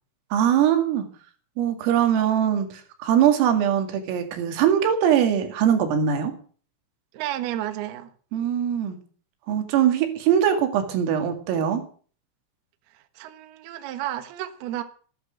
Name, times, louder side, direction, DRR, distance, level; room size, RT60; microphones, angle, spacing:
voice 1, 0.3-1.1 1.6-6.3 8.3-9.0 9.5-11.8, right 9 dB, 90° right, 4.9 m, -22 dB
voice 2, 7.1-8.1 12.9-14.8, right 13 dB, 65° right, 3.0 m, -32 dB
19.5 x 11.5 x 6.3 m
omnidirectional pair, 5.8 m